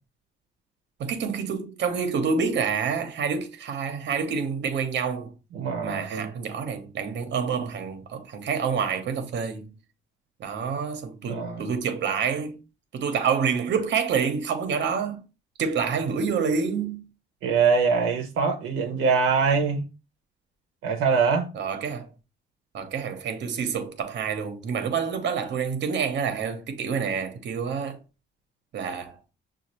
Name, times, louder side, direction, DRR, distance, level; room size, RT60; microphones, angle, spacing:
voice 1, 1.0-5.3 5.8-9.7 10.4-12.6 12.9-15.2 15.6-17.0 21.5-22.1 22.7-28.0 28.7-29.2, right 6 dB, 65° right, 0.9 m, -28 dB
voice 2, 5.5-6.3 11.2-11.6 17.4-19.9 20.8-21.5, right 5 dB, 90° right, 0.7 m, -23 dB
6.3 x 2.4 x 2.9 m
cardioid pair, 90°, 20 cm